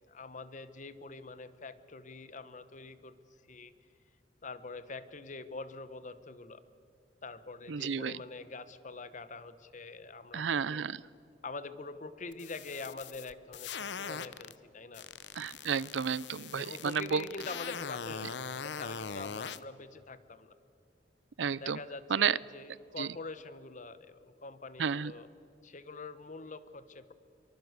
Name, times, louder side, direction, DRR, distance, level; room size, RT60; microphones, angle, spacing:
voice 1, 0.1-3.2 3.5-3.7 4.4-6.6 7.2-10.9 11.4-15.1 16.5-20.5 21.6-25.3 25.6-27.1, left 3 dB, 45° left, 13 dB, 1.1 m, -45 dB
voice 2, 7.7-8.2 10.3-11.0 15.4-17.2 21.4-21.8 22.1-22.4 23.0-23.1 24.8-25.1, right 6 dB, 90° right, 21 dB, 0.6 m, -31 dB
sound 1, 12.3-14.5 14.9-19.6, left 6 dB, 75° left, 0.8 m, -41 dB
24.0 x 24.0 x 8.1 m, 2.6 s
head